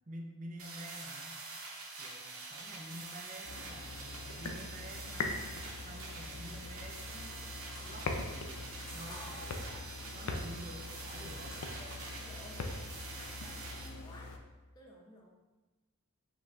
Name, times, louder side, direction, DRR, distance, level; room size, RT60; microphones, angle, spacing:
voice 1, 0.0-1.4 2.0-7.5 7.8-9.8 10.1-11.6, right 1 dB, 35° right, 2 dB, 0.5 m, -49 dB
sound 1, 0.6-13.9, right 3 dB, 80° right, 0.9 m, -46 dB
sound 2, 3.4-14.4, left 3 dB, 80° left, 0.5 m, -42 dB
sound 3, 7.6-8.0 8.8-9.3 10.2-10.8 11.4-12.1, equal, 65° left, 1.4 m, -54 dB
voice 2, 9.1-10.4 11.8-14.3 14.7-15.3, left 1 dB, 20° left, -1 dB, 0.5 m, -54 dB
5.3 x 3.8 x 2.4 m, 1.2 s
head